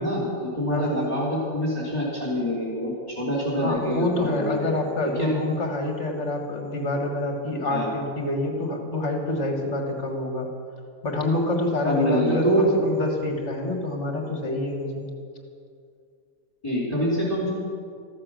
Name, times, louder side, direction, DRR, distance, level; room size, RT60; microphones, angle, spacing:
voice 1, 0.0-4.5 5.2-5.3 7.7-7.9 11.8-12.6 16.6-17.5, equal, 20° left, -6 dB, 3.3 m, -25 dB
voice 2, 0.7-1.0 3.6-10.5 11.0-15.1, left 2 dB, 45° left, 3 dB, 1.9 m, -27 dB
14.0 x 13.5 x 6.3 m, 2.3 s
omnidirectional pair, 1.7 m